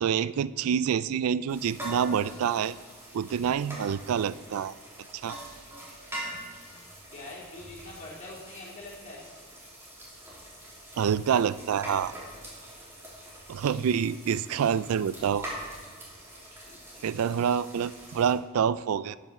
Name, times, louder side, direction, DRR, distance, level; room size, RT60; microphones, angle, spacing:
voice 1, 0.0-2.8 3.1-4.7 5.1-5.4 11.0-12.1 13.5-15.5 17.0-19.2, right 7 dB, 80° right, 17 dB, 0.3 m, -27 dB
sound 1, 1.5-18.3, right 1 dB, 10° right, 3.0 m, -44 dB
voice 2, 7.1-9.3 16.6-17.4, left 2 dB, 35° left, -6 dB, 3.6 m, -45 dB
9.4 x 8.5 x 6.5 m, 1.5 s
head